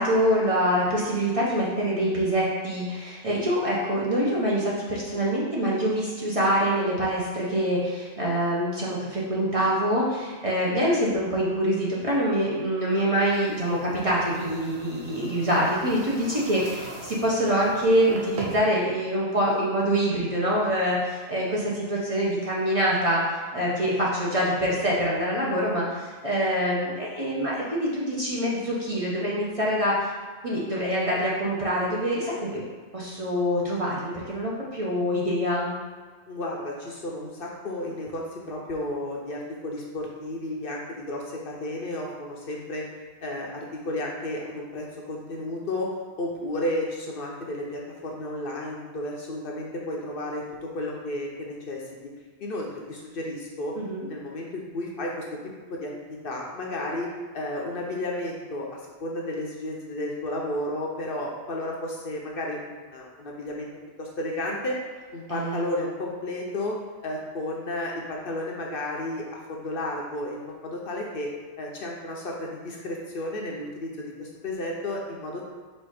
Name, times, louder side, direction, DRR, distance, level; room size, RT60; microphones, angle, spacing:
voice 1, 0.0-30.1 30.4-32.6 32.9-35.7 53.8-54.1 65.3-65.7, equal, 35° right, -6 dB, 0.7 m, -25 dB
sound 1, 13.3-18.6, right 2 dB, 70° right, 1.1 m, -42 dB
voice 2, 36.3-42.8 43.2-45.9 46.2-51.8 52.4-53.8 54.1-55.9 56.2-57.1 57.3-58.7 59.0-63.7 64.0-64.7 65.1-66.8 67.0-71.3 71.6-73.9 74.2-75.4, left 1 dB, 60° left, -2 dB, 0.8 m, -32 dB
4.2 x 2.5 x 4.7 m, 1.5 s
omnidirectional pair, 1.2 m